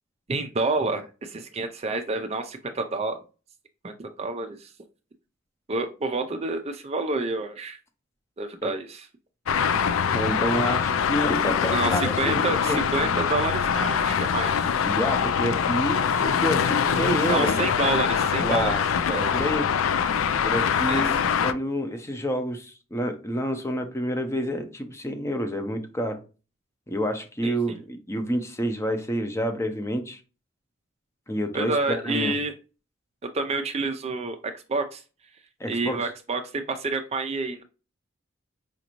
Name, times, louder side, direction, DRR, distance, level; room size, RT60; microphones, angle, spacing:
voice 1, 0.3-3.2 3.8-4.7 5.7-7.8 8.4-9.1 11.7-14.7 17.3-18.8 19.1-19.3 20.9-21.0 27.4-27.6 31.5-32.5 33.3-35.0 35.7-37.6, right 3 dB, 30° right, 7 dB, 0.4 m, -28 dB
Traffic noise roadway noise, 9.5-21.5, left 7 dB, 80° left, 0.4 m, -24 dB
voice 2, 10.1-12.8 14.8-17.5 18.4-18.8 19.1-19.7 20.4-21.2 21.4-26.2 26.9-30.2 31.3-32.4 35.6-36.1, equal, 15° left, 6 dB, 0.6 m, -28 dB
5.0 x 2.6 x 2.9 m, 0.33 s
head